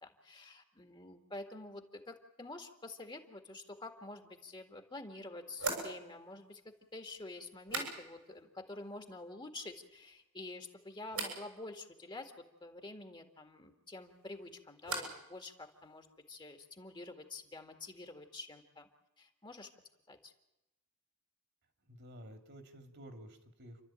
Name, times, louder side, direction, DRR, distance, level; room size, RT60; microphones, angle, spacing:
voice 1, 0.0-18.9 19.2-19.7 20.1-20.3, left 2 dB, 20° left, 5 dB, 1.9 m, -48 dB
sound 1, 4.3-4.4 5.6-8.4 8.7-9.3 9.6-10.2 11.1-11.4 13.8-15.3 15.6-16.2, right 3 dB, 85° right, 7.3 m, -43 dB
voice 2, 21.9-23.8, equal, 55° right, 6 dB, 2.6 m, -52 dB
29.5 x 12.5 x 8.9 m, 0.94 s
head